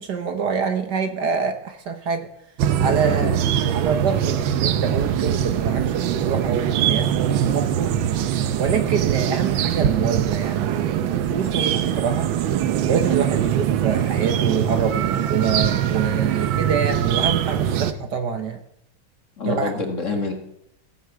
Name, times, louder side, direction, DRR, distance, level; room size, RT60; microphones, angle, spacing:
voice 1, 0.0-2.3 2.8-3.4 3.7-8.0 8.6-12.3 12.9-18.6 19.4-19.7, right 6 dB, 55° right, 7 dB, 1.6 m, -26 dB
sound 1, 2.6-17.9, right 9 dB, 70° right, 1.5 m, -22 dB
voice 2, 2.8-3.3 19.4-20.3, left 3 dB, 40° left, 4 dB, 1.8 m, -27 dB
16.0 x 8.0 x 6.9 m, 0.76 s
omnidirectional pair, 2.3 m